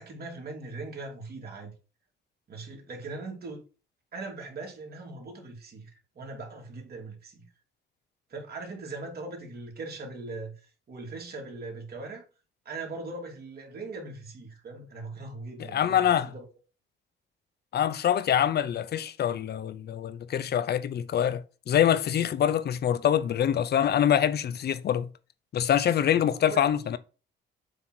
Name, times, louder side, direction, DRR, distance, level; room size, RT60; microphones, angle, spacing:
voice 1, 0.0-1.7 2.5-3.6 4.1-5.9 6.1-7.4 8.3-10.5 10.9-12.2 12.6-16.4 26.1-26.7, right 3 dB, 50° right, 2.7 m, -40 dB
voice 2, 15.7-16.3 17.7-25.1 25.5-27.0, left 10 dB, 55° left, 0.7 m, -25 dB
7.9 x 3.0 x 6.0 m
cardioid pair, 90°, 20 cm